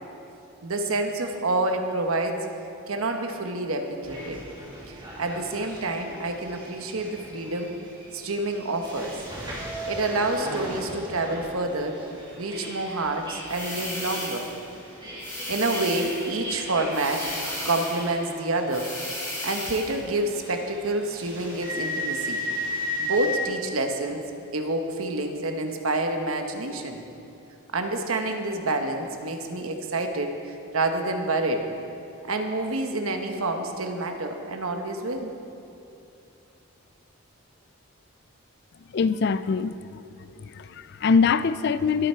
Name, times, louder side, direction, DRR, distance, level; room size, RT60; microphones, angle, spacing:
voice 1, 0.6-2.4 2.9-4.4 4.9-7.8 8.1-9.2 9.9-12.0 12.4-14.5 15.5-17.3 17.6-18.9 19.4-22.4 23.0-24.2 24.5-27.0 27.7-31.7 32.3-35.3, right 2 dB, 70° right, 4 dB, 1.2 m, -28 dB
sound 1, 4.0-23.4, equal, 20° right, 2.6 m, -37 dB
sound 2, 13.5-14.6 15.2-16.3 16.9-18.1 18.7-20.0, left 1 dB, 10° left, 2.8 m, -34 dB
voice 2, 38.9-40.0 40.4-42.1, left 5 dB, 50° left, 14 dB, 0.3 m, -23 dB
21.5 x 7.9 x 4.5 m, 2.8 s
head